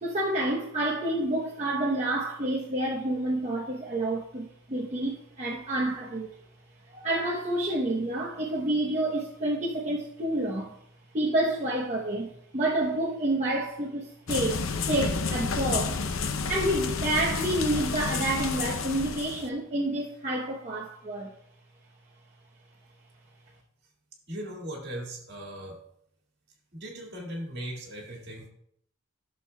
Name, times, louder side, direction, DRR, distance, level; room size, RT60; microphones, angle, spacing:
voice 1, 0.0-6.3 6.9-10.8 11.1-16.0 16.5-21.3, right 1 dB, 35° right, 0.9 m, -29 dB
sound 1, 14.3-19.5, left 4 dB, 85° left, 0.7 m, -30 dB
voice 2, 24.3-25.8 26.7-28.5, right 1 dB, 55° right, 2.1 m, -38 dB
14.5 x 6.4 x 2.3 m
head